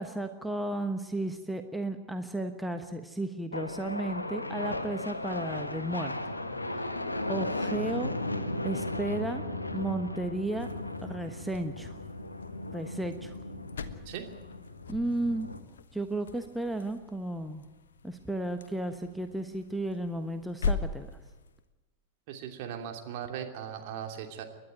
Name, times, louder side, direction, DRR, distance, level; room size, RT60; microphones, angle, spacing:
voice 1, 0.0-6.1 6.7-6.9 7.3-8.1 8.6-9.4 9.7-10.7 11.0-11.9 12.7-13.4 14.9-15.5 15.9-17.6 18.0-21.1, right 1 dB, 5° right, 6 dB, 1.2 m, -34 dB
sound 1, 3.5-15.6, left 2 dB, 80° left, 1.4 m, -36 dB
sound 2, 10.5-21.6, left 4 dB, 65° left, 1.2 m, -41 dB
voice 2, 22.3-24.4, right 9 dB, 50° right, 4 dB, 2.9 m, -38 dB
29.5 x 11.5 x 9.3 m, 1.1 s
figure-of-eight pair, 90°, 0 cm